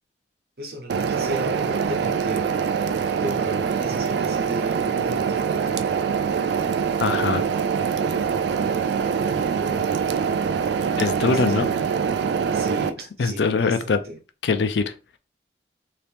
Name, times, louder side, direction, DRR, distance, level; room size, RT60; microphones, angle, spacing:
voice 1, 0.6-2.5 3.2-5.9 8.1-8.2 9.5-9.9 11.3-11.6 12.5-14.2, right 1 dB, 65° right, 0.9 m, -35 dB
sound 1, 0.9-12.9, right 6 dB, 85° right, 0.3 m, -24 dB
voice 2, 7.0-7.4 11.0-11.7 13.2-14.0 14.4-14.9, left 4 dB, 85° left, 0.4 m, -22 dB
2.8 x 2.8 x 3.4 m
head